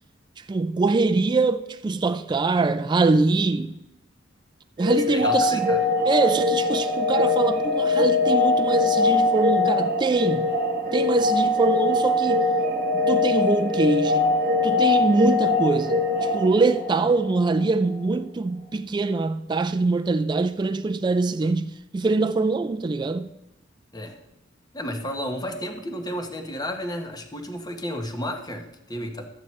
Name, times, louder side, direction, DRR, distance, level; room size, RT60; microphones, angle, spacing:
voice 1, 0.4-3.7 4.8-5.7 6.1-10.5 10.9-12.5 12.9-14.4 14.6-23.3, right 3 dB, 25° right, 0.3 m, -23 dB
sound 1, 4.8-17.6, left 3 dB, 45° right, 1.3 m, -22 dB
voice 2, 4.9-5.8 23.9-24.2 24.7-29.3, equal, 20° left, 1.0 m, -32 dB
12.0 x 8.6 x 3.1 m
head